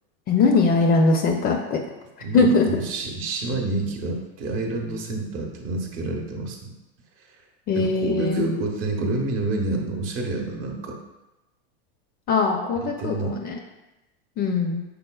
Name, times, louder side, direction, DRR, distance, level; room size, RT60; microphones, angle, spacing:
voice 1, 0.3-1.8 2.3-2.7 7.7-8.5 12.3-13.6 14.4-14.8, left 3 dB, 30° left, 3 dB, 0.4 m, -21 dB
voice 2, 2.2-6.7 7.7-11.0 13.0-13.4, right 2 dB, 45° right, 1 dB, 0.9 m, -28 dB
5.4 x 3.9 x 2.3 m, 0.99 s
supercardioid pair, 125°, 31 cm